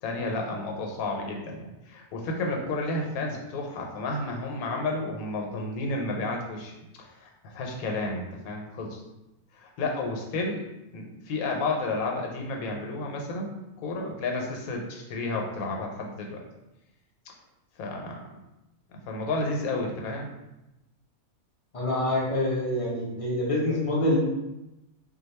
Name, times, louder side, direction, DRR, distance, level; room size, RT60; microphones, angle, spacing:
voice 1, 0.0-6.7 7.0-9.0 9.6-10.6 10.9-16.4 17.8-18.2 19.0-20.3, left 2 dB, 80° left, 1 dB, 1.1 m, -31 dB
voice 2, 21.7-24.2, left 1 dB, 40° left, -4 dB, 0.5 m, -26 dB
2.6 x 2.2 x 4.1 m, 0.94 s
omnidirectional pair, 1.5 m